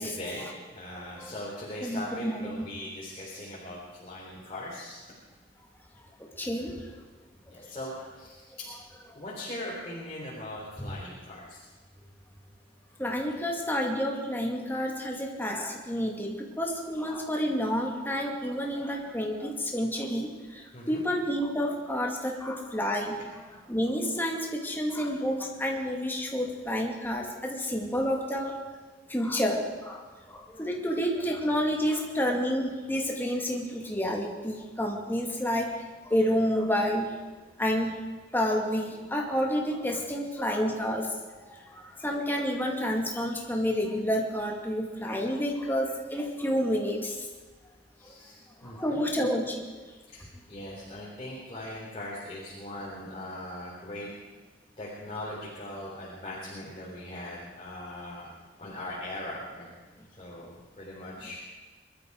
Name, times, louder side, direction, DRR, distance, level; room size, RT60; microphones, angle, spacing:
voice 1, 0.0-5.1 7.5-8.5 9.1-11.6 20.7-21.0 48.0-49.0 50.1-54.1 54.8-58.3 58.6-59.7 60.1-61.4, left 1 dB, 30° left, -7 dB, 3.6 m, -40 dB
voice 2, 1.8-2.6 6.2-6.7 7.5-7.7 13.0-23.2 23.7-28.6 29.1-35.7 36.0-37.1 37.6-37.9 38.3-41.1 41.4-47.2 48.0-48.1 48.6-49.7, equal, 10° left, 0 dB, 2.4 m, -29 dB
23.0 x 13.0 x 4.8 m, 1.3 s
head